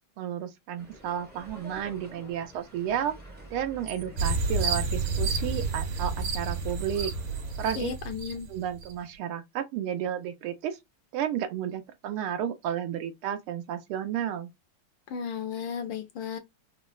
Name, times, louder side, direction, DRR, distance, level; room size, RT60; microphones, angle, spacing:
voice 1, 0.2-3.1 3.5-7.1 7.6-7.9 8.5-10.8 11.1-14.5, right 9 dB, 85° right, 1.6 m, -32 dB
sound 1, 0.8-8.0, equal, 15° right, 0.4 m, -48 dB
sound 2, 4.2-8.9, right 3 dB, 65° right, 1.7 m, -30 dB
voice 2, 7.8-8.5 15.1-16.4, left 7 dB, 75° left, 1.2 m, -34 dB
4.4 x 2.0 x 2.3 m
omnidirectional pair, 2.4 m